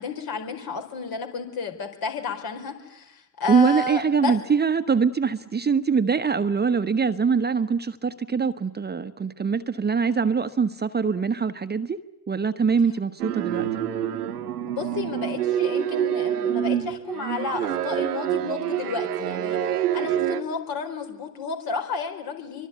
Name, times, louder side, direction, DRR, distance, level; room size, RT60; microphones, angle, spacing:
voice 1, 0.0-4.3 14.7-22.7, left 4 dB, 50° left, 6 dB, 4.7 m, -32 dB
voice 2, 3.5-12.0 12.3-13.7, right 5 dB, 20° right, 11 dB, 1.1 m, -23 dB
sound 1, 13.2-20.4, right 10 dB, 85° right, 1.3 m, -26 dB
26.5 x 24.0 x 9.4 m, 0.93 s
figure-of-eight pair, 55°, 45 cm